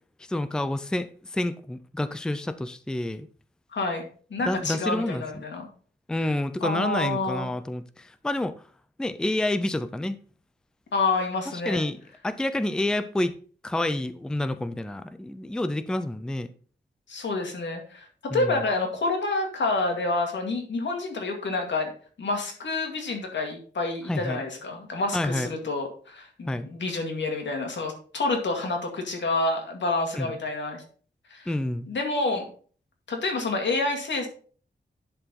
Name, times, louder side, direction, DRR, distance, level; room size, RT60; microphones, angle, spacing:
voice 1, 0.3-3.3 4.4-5.4 6.1-8.5 9.0-10.2 11.7-12.0 12.2-13.3 13.6-16.5 18.3-18.6 24.1-24.4 25.1-25.5 26.5-26.7 30.2-30.3 31.5-31.9, left 1 dB, 5° left, 0.4 m, -28 dB
voice 2, 3.7-5.6 6.6-7.5 10.9-11.8 17.1-18.1 18.3-21.9 22.2-30.8 31.3-31.5 31.9-32.5 33.1-34.3, left 3 dB, 85° left, 2.2 m, -28 dB
11.0 x 4.6 x 4.2 m
wide cardioid pair, 180°, 18 cm